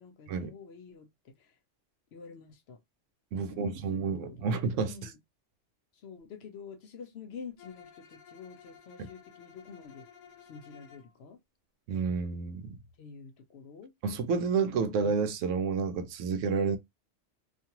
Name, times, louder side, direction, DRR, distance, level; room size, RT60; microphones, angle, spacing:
voice 1, 0.0-1.5 2.1-2.8 3.3-4.5 4.8-5.2 5.9-10.1 10.4-11.4 13.0-13.9, left 5 dB, 65° left, 0.8 m, -48 dB
voice 2, 3.3-5.1 9.0-9.1 11.9-12.8 14.0-16.8, right 5 dB, 80° right, 0.9 m, -30 dB
Bowed string instrument, 7.6-11.1, left 8 dB, 90° left, 1.0 m, -54 dB
2.5 x 2.4 x 2.8 m
omnidirectional pair, 1.3 m